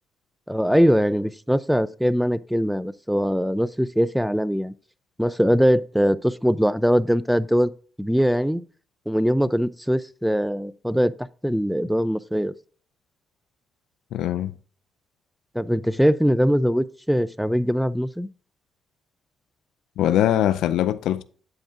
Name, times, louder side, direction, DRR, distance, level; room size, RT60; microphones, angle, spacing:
voice 1, 0.5-4.7 5.2-7.7 8.0-8.6 9.1-11.1 11.4-12.5 15.5-18.3, equal, ahead, 0.4 m, -21 dB
voice 2, 14.1-14.5 20.0-21.2, left 11 dB, 80° left, 0.4 m, -22 dB
8.5 x 7.9 x 2.5 m
cardioid pair, 90°, 0 cm